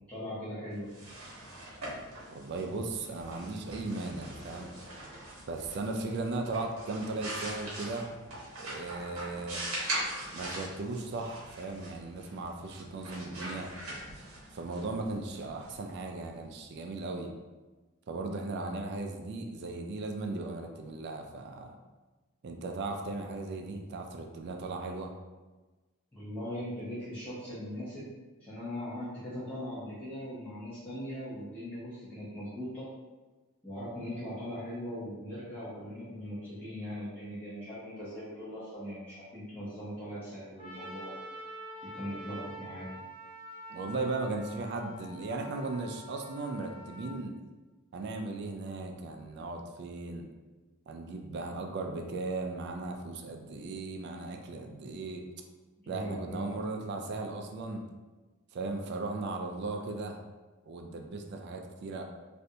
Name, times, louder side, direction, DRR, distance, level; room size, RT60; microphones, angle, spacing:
voice 1, 0.1-1.1 26.1-28.1 28.4-32.9 33.6-41.2 41.8-43.0 55.8-56.6, equal, 10° left, -13 dB, 0.7 m, -40 dB
sound 1, 0.8-16.4, right 1 dB, 75° right, 0.9 m, -42 dB
voice 2, 2.3-4.7 5.5-8.2 8.6-9.6 10.3-13.7 14.5-17.3 18.1-21.8 22.4-25.1 43.7-47.3 47.9-50.3 50.9-55.2 55.9-57.8 58.5-60.2 60.7-62.0, right 3 dB, 50° right, 3 dB, 0.3 m, -37 dB
Trumpet, 40.6-47.2, equal, 25° left, 1.2 m, -46 dB
3.2 x 2.5 x 2.7 m, 1.2 s
head